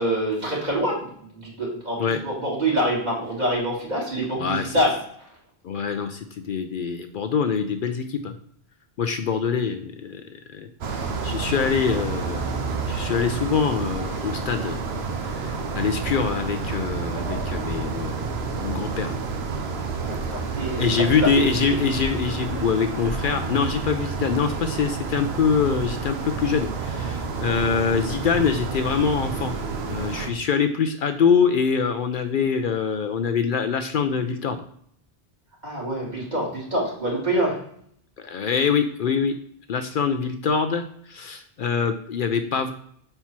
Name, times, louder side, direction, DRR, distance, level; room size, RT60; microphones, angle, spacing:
voice 1, 0.0-4.9 20.0-21.4 35.6-37.6, right 1 dB, 45° right, -4 dB, 2.3 m, -26 dB
voice 2, 4.4-4.7 5.6-8.3 9.0-14.8 15.2-19.2 20.8-29.5 29.9-34.6 38.2-39.3 39.7-42.7, left 6 dB, 60° left, 7 dB, 0.7 m, -24 dB
sound 1, 10.8-30.3, right 4 dB, 90° right, 1.1 m, -29 dB
5.6 x 4.5 x 5.9 m, 0.65 s
omnidirectional pair, 1.0 m